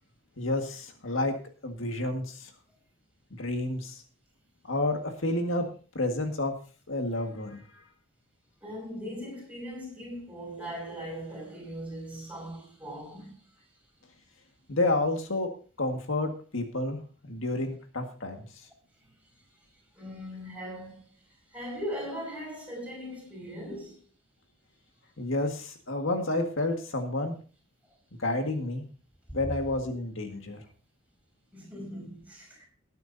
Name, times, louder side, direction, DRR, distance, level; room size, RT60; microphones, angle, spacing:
voice 1, 0.4-1.3 1.6-2.5 3.4-4.0 4.7-5.7 6.0-6.5 6.9-7.6 14.7-15.5 15.8-18.4 25.2-27.3 28.2-28.9 29.3-30.6, left 2 dB, 70° left, 1.9 m, -30 dB
voice 2, 8.6-13.4 19.0-19.1 19.9-24.0 27.8-28.0 31.5-32.7, equal, 5° right, 5.7 m, -39 dB
20.0 x 9.3 x 2.8 m
head